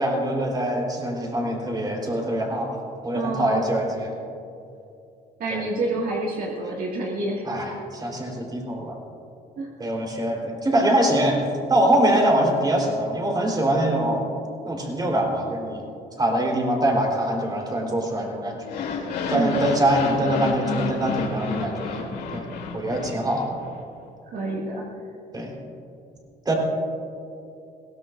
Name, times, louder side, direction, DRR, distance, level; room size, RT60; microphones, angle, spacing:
voice 1, 0.0-2.8 3.0-4.2 5.5-5.6 7.5-9.0 9.8-11.4 11.7-14.3 14.6-15.9 16.2-18.6 19.3-22.5 22.7-23.5 25.3-25.5 26.5-26.6, right 1 dB, 25° right, 0 dB, 3.9 m, -23 dB
voice 2, 3.1-3.6 5.4-7.4 9.6-9.7 19.3-19.7 24.3-24.8, right 2 dB, 60° right, -3 dB, 2.0 m, -28 dB
sound 1, 18.6-23.8, left 5 dB, 80° left, 3.1 m, -30 dB
22.0 x 17.0 x 2.6 m, 2.7 s
cardioid pair, 110°, 17 cm